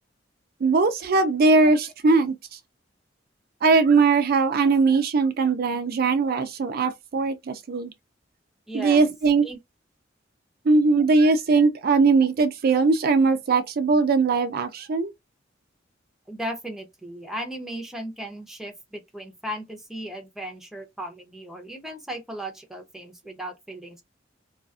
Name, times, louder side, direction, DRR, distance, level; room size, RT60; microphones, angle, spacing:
voice 1, 0.6-2.3 3.6-7.9 8.7-9.5 10.7-15.1, right 4 dB, 55° right, 0.4 m, -20 dB
voice 2, 8.7-9.1 9.4-9.6 16.3-24.0, right 1 dB, ahead, 0.7 m, -36 dB
2.4 x 2.3 x 2.4 m
head